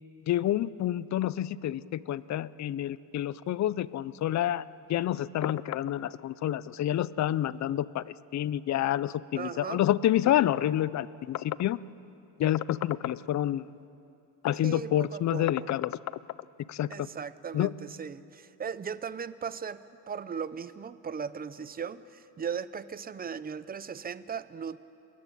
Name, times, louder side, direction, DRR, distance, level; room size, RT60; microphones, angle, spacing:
voice 1, 0.3-4.6 4.9-11.8 12.4-13.6 14.4-16.0 16.7-16.9 17.5-17.7, left 12 dB, 40° left, 19 dB, 0.5 m, -28 dB
voice 2, 9.4-9.8 14.6-15.7 16.9-19.8 20.1-24.8, right 6 dB, 20° right, 15 dB, 0.5 m, -37 dB
28.0 x 14.0 x 9.1 m, 2.7 s
cardioid pair, 150°, 45 cm